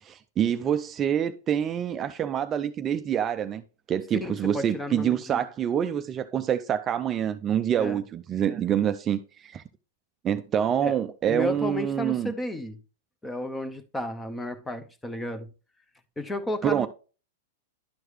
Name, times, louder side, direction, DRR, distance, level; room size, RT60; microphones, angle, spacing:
voice 1, 0.0-3.6 3.9-9.6 10.2-12.3 16.6-16.9, right 9 dB, 25° right, 0.4 m, -26 dB
voice 2, 4.2-5.4 7.8-8.0 10.8-11.0 11.3-12.8 13.2-15.5 16.2-16.9, left 1 dB, 10° left, 0.7 m, -32 dB
11.0 x 4.7 x 3.2 m
hypercardioid pair, 130°, 0 cm